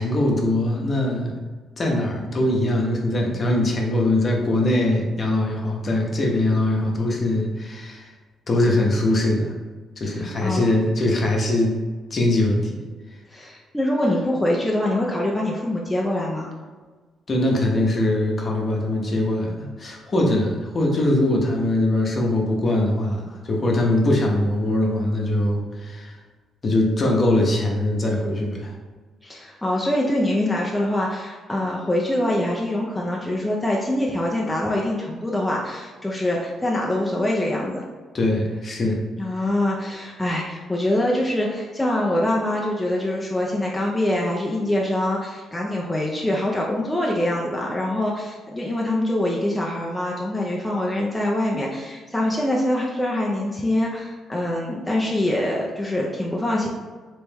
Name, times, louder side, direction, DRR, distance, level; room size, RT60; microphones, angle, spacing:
voice 1, 0.0-1.3 1.8-8.1 8.5-9.5 10.0-11.7 12.1-12.8 17.3-26.2 26.6-28.7 38.1-39.0 39.3-39.4, left 1 dB, 40° left, 0 dB, 0.8 m, -22 dB
voice 2, 10.1-10.7 13.3-16.5 29.2-37.8 39.2-56.7, left 1 dB, 10° left, -3 dB, 0.5 m, -24 dB
3.3 x 3.1 x 3.3 m, 1.4 s
cardioid pair, 90°, 0 cm